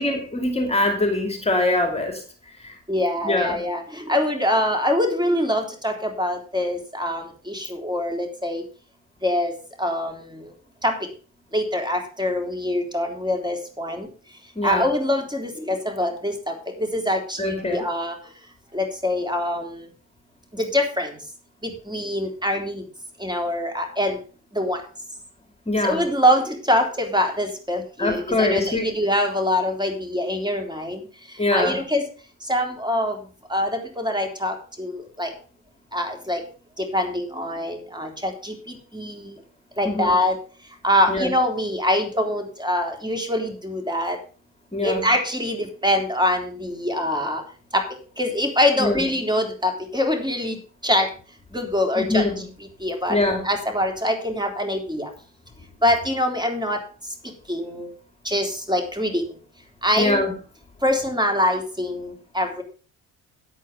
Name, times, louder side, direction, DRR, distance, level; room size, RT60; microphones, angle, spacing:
voice 1, 0.0-2.2 2.6-2.7 3.2-3.6 14.6-14.9 17.4-17.8 25.7-26.0 28.0-28.9 31.4-31.8 39.8-40.1 41.1-41.3 44.7-45.0 48.8-49.0 52.0-52.3 53.1-53.4 60.0-60.3, left 2 dB, 15° left, 3 dB, 2.7 m, -23 dB
voice 2, 2.9-8.6 9.2-9.5 9.8-10.1 10.8-10.9 11.5-14.1 14.6-18.1 18.7-19.6 20.6-21.1 21.9-22.8 23.2-24.2 24.5-24.8 25.8-31.0 31.5-32.0 32.5-33.2 33.5-34.9 35.2-35.3 35.9-36.4 36.9-38.6 38.9-39.3 39.8-40.4 40.8-44.2 44.8-47.4 47.7-47.8 48.2-50.6 50.8-51.1 51.5-52.2 52.8-53.2 53.4-55.1 55.8-56.8 57.5-57.9 58.3-59.2 59.8-60.2 60.8-62.6, left 1 dB, 10° right, 4 dB, 3.5 m, -24 dB
9.8 x 8.5 x 5.2 m, 0.38 s
hypercardioid pair, 55°, 36 cm